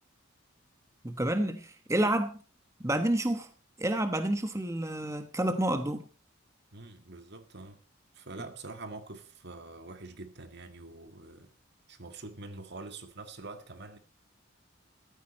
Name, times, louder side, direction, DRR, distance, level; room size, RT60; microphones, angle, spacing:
voice 1, 1.0-2.4 2.8-3.5 3.8-6.1, right 1 dB, 15° right, 1.0 m, -29 dB
voice 2, 6.7-7.8 8.1-11.5 11.9-14.0, right 3 dB, 60° right, 1.8 m, -45 dB
14.0 x 13.5 x 4.2 m
head